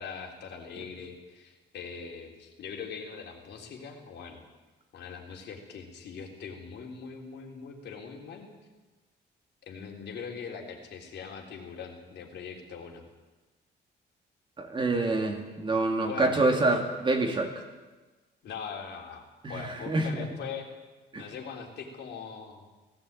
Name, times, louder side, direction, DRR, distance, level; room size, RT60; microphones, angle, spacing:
voice 1, 0.0-4.4 4.9-8.5 9.6-13.0 16.0-16.5 18.4-20.7 21.2-22.6, left 6 dB, 65° left, 2 dB, 3.6 m, -41 dB
voice 2, 14.6-17.5 19.4-20.3 21.1-21.3, right 2 dB, 25° right, 3 dB, 2.7 m, -27 dB
18.0 x 16.5 x 8.8 m, 1.2 s
cardioid pair, 155°, 19 cm